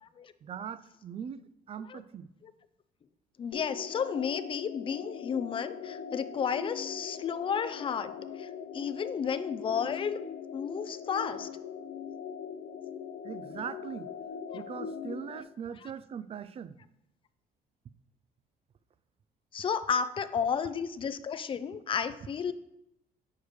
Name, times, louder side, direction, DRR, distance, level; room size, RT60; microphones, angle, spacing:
voice 1, 0.4-1.4 1.7-2.3 9.2-9.5 13.2-14.1 14.5-16.8, right 7 dB, 35° right, 0.4 m, -40 dB
voice 2, 3.4-10.2 10.5-11.5 14.5-14.6 19.5-22.5, left 7 dB, 30° left, 0.4 m, -32 dB
sound 1, 3.5-15.4, left 7 dB, 75° left, 0.7 m, -41 dB
8.2 x 6.5 x 3.1 m
cardioid pair, 110°, 17 cm